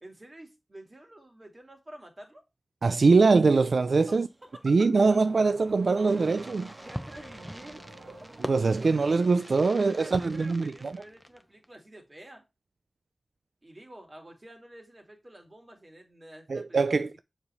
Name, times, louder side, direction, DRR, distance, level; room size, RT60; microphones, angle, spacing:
voice 1, 0.0-2.4 4.1-4.5 6.8-8.2 8.8-9.1 9.7-12.4 13.6-17.0, right 1 dB, 30° right, 2.2 m, -49 dB
voice 2, 2.8-4.3 4.6-6.7 8.5-10.9 16.5-17.2, right 4 dB, 80° right, 0.3 m, -23 dB
Car / Accelerating revving vroom, 4.2-9.3, right 2 dB, 55° right, 1.4 m, -48 dB
Fireworks, 6.1-11.6, equal, 5° right, 0.7 m, -43 dB
7.1 x 3.3 x 5.4 m
wide cardioid pair, 90°, 0 cm